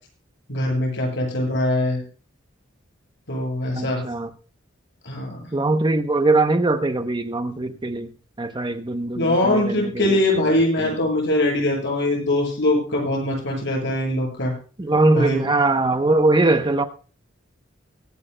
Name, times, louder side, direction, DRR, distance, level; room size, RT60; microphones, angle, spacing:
voice 1, 0.5-2.0 3.3-4.0 5.1-5.5 9.2-14.5 15.1-15.5, left 1 dB, 60° left, 7.1 m, -22 dB
voice 2, 3.7-4.3 5.5-8.1 8.4-10.2 10.8-10.9 14.8-16.8, right 2 dB, 25° right, 0.8 m, -21 dB
24.0 x 10.5 x 2.2 m
head